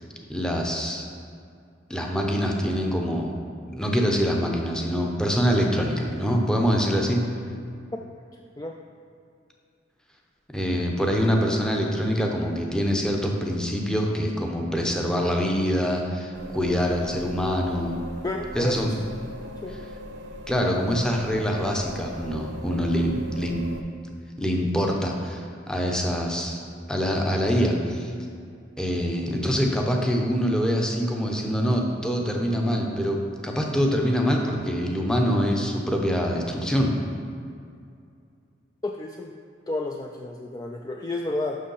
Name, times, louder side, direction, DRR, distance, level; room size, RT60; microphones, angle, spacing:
voice 1, 0.3-1.1 1.9-3.3 3.7-7.2 10.5-18.0 18.5-18.9 20.5-23.6 24.4-26.6 26.9-28.1 28.8-36.9, equal, 5° left, 0 dB, 0.8 m, -25 dB
sound 1, 16.3-23.8, left 1 dB, 65° right, 0.8 m, -40 dB
voice 2, 18.2-19.0 19.6-19.8 38.8-39.3 39.7-41.6, left 2 dB, 20° left, 1 dB, 0.3 m, -31 dB
6.4 x 6.2 x 5.5 m, 2.3 s
head